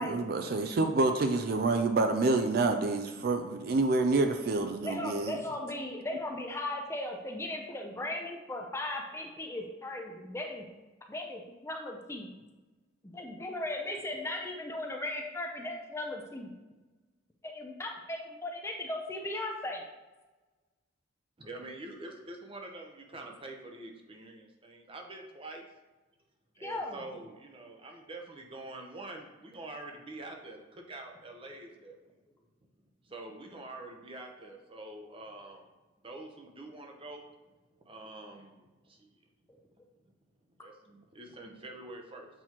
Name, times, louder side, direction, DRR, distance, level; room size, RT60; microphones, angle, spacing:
voice 1, 0.0-5.4, right 3 dB, 50° right, 6 dB, 0.4 m, -28 dB
voice 2, 4.8-10.6 11.1-12.3 13.1-16.5 17.4-19.8 26.6-27.0, left 1 dB, 15° left, 1 dB, 0.5 m, -37 dB
voice 3, 21.4-25.7 26.6-32.1 33.1-35.7 36.0-37.2 37.8-39.2 40.6-42.3, right 2 dB, 25° right, 2 dB, 0.7 m, -46 dB
7.7 x 4.3 x 2.9 m, 1.2 s
head